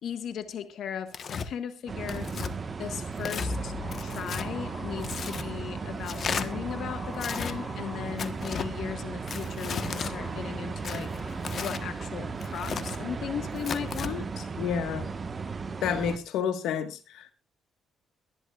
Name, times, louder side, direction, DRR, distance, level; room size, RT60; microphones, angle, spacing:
voice 1, 0.0-2.3 2.8-3.7 4.0-11.1 11.6-14.5, left 8 dB, 70° left, 9 dB, 1.3 m, -37 dB
Tearing, 1.1-1.5 2.1-2.5 3.2-3.5 3.9-4.5 5.0-5.5 6.1-6.5 7.1-7.5 8.2-8.7 9.3-10.1 10.8-11.8 12.4-13.0 13.6-14.1, left 6 dB, 50° left, 1.2 m, -35 dB
City Skyline Rooftops Noisy London, 1.9-16.2, right 4 dB, 35° right, 1.3 m, -36 dB
sound 1, 3.4-8.8 9.5-12.7 13.0-13.1, left 3 dB, 25° left, 6.2 m, -43 dB
voice 2, 14.6-15.1 15.8-17.3, left 8 dB, 85° left, 10 dB, 1.5 m, -29 dB
22.5 x 11.0 x 2.4 m, 0.29 s
cardioid pair, 90°, 0 cm